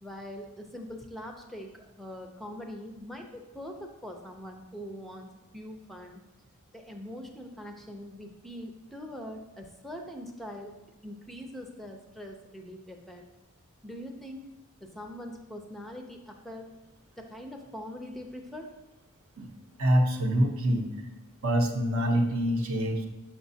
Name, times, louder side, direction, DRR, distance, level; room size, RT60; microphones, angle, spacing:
voice 1, 0.0-5.3 5.5-6.2 6.7-10.8 11.0-13.2 13.8-14.4 14.8-16.7 17.2-18.7, equal, ahead, 2 dB, 0.4 m, -42 dB
voice 2, 19.8-21.1 21.4-23.1, equal, 65° right, 3 dB, 0.8 m, -25 dB
6.1 x 6.0 x 2.7 m, 1.1 s
head